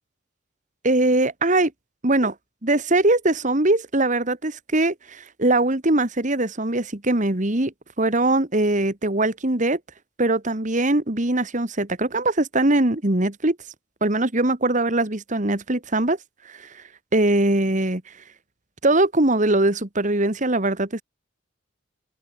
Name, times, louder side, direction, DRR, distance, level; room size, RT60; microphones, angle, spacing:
voice 1, 0.8-1.7 2.0-2.3 2.6-9.8 10.2-13.6 14.0-16.2 16.5-16.7 17.1-18.0 18.8-21.0, right 2 dB, 40° right, 1.9 m, -21 dB
open air
head